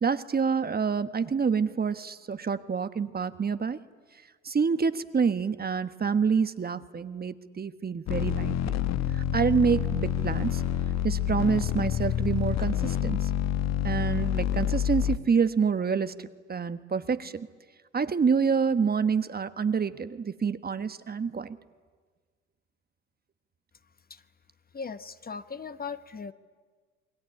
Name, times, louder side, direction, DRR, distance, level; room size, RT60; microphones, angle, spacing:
voice 1, 0.0-3.8 4.4-8.8 9.1-10.6 11.0-13.3 13.8-16.1 16.5-17.5 17.9-21.6, right 6 dB, 25° right, 12 dB, 1.3 m, -27 dB
sound 1, 8.1-15.2, left 10 dB, 50° left, 1.1 m, -28 dB
voice 2, 24.7-26.3, left 5 dB, 25° left, 12 dB, 1.2 m, -38 dB
27.5 x 22.0 x 9.8 m, 1.5 s
hypercardioid pair, 65°, 36 cm